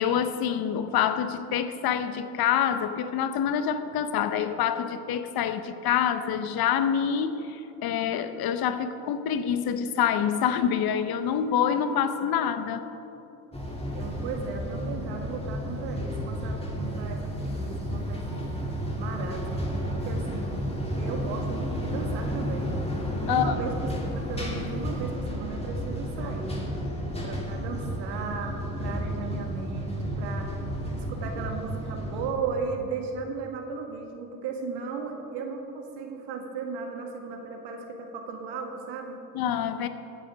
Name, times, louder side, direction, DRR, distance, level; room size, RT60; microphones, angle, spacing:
voice 1, 0.0-12.8 23.3-23.6 39.3-39.9, left 8 dB, 60° left, 11 dB, 0.9 m, -26 dB
sound 1, 13.5-32.3, equal, 15° left, 2.7 m, -32 dB
voice 2, 13.9-18.5 19.0-20.6 21.0-22.7 23.2-23.7 24.0-26.7 27.2-30.6 30.9-39.2, right 5 dB, 70° right, 3 dB, 1.9 m, -36 dB
14.5 x 7.9 x 5.1 m, 2.9 s
supercardioid pair, 75°, 42 cm